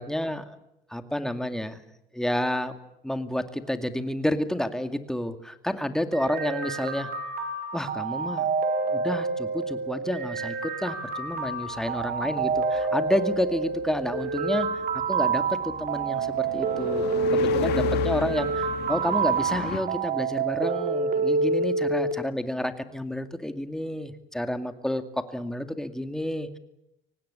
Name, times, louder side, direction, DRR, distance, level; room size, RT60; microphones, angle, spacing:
voice 1, 0.0-0.6 0.9-1.8 2.1-2.7 3.0-7.1 7.7-8.5 8.9-12.5 12.9-26.6, left 1 dB, 5° left, 8 dB, 2.2 m, -30 dB
sound 1, 6.1-22.1, right 4 dB, 60° right, 4.4 m, -28 dB
sound 2, 11.3-19.8, left 11 dB, 80° left, 2.5 m, -36 dB
25.0 x 18.5 x 9.8 m, 0.85 s
cardioid pair, 110°, 17 cm